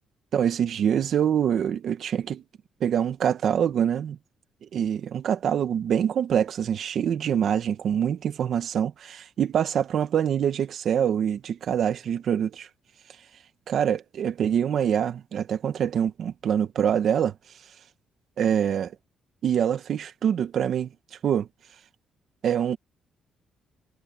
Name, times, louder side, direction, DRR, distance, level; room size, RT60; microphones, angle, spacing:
voice 1, 0.3-2.4 2.8-4.2 4.7-12.7 13.7-17.3 18.4-18.9 19.4-20.9 21.2-21.5 22.4-22.8, right 9 dB, 65° right, 1.8 m, -25 dB
cardioid pair, 90°, 0 cm